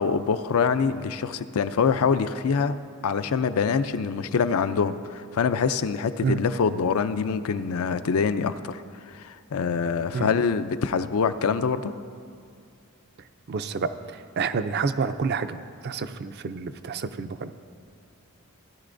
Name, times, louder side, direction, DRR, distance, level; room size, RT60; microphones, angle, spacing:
voice 1, 0.0-2.7 3.0-8.8 9.1-11.9, left 5 dB, 80° left, 11 dB, 0.4 m, -25 dB
voice 2, 13.5-13.9 14.4-15.6 15.8-17.6, right 5 dB, 45° right, 10 dB, 0.4 m, -28 dB
16.5 x 10.5 x 2.6 m, 2.2 s
head